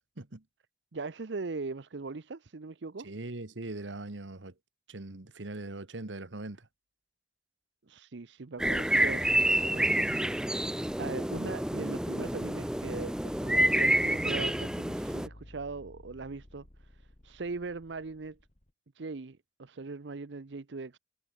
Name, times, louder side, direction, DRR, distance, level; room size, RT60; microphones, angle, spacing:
voice 1, 0.9-3.1 7.9-9.9 11.0-18.4 18.9-21.0, right 3 dB, 70° right, 0.7 m, -40 dB
voice 2, 3.0-4.5 4.9-6.7, right 2 dB, 90° right, 1.5 m, -41 dB
sound 1, 8.6-15.3, right 1 dB, 5° right, 0.5 m, -28 dB
sound 2, 12.2-18.7, left 1 dB, 35° left, 1.7 m, -52 dB
head